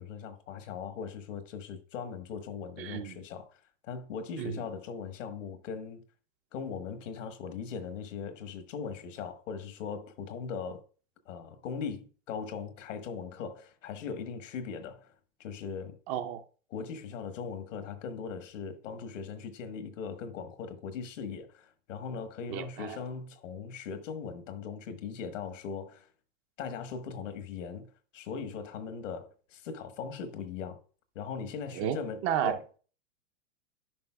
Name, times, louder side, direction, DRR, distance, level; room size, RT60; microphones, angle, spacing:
voice 1, 0.0-3.5 3.8-6.0 6.5-10.8 11.3-15.1 15.4-16.0 16.7-26.1 26.6-27.9 28.1-30.8 31.1-32.6, left 6 dB, 80° left, 1.3 m, -39 dB
voice 2, 2.8-3.2 4.4-4.6 16.1-16.4 22.5-23.0 31.8-32.0 32.2-32.6, right 10 dB, 35° right, 0.6 m, -32 dB
10.5 x 5.4 x 2.3 m
hypercardioid pair, 125°, 37 cm